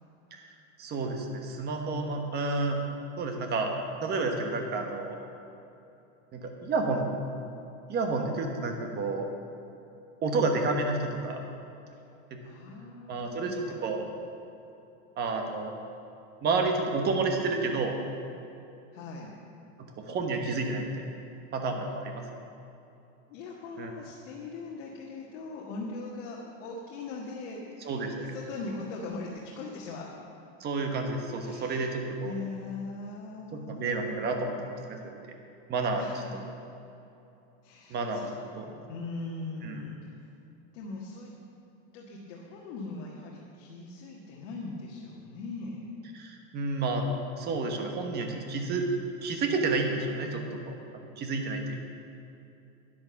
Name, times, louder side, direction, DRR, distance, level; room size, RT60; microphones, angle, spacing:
voice 1, 0.8-2.8 3.2-3.7 4.0-5.2 6.3-7.1 7.9-9.3 10.2-11.4 12.3-12.4 13.1-14.0 15.2-15.7 16.4-18.0 19.8-20.9 21.5-22.2 23.8-23.9 27.8-28.1 30.6-32.3 33.5-35.1 35.7-36.0 37.9-38.3 38.6-38.7 39.6-39.8 46.1-47.1 47.4-48.9 49.2-50.7 51.2-51.8, right 3 dB, 25° right, 3 dB, 1.3 m, -30 dB
voice 2, 12.4-13.8 18.9-19.3 23.3-30.1 31.4-31.9 32.2-34.2 35.9-36.4 37.6-38.3 38.9-40.0 40.7-41.3 41.9-45.9, left 3 dB, 65° left, -3 dB, 1.8 m, -40 dB
10.5 x 10.5 x 7.0 m, 2.8 s
supercardioid pair, 170°, 39 cm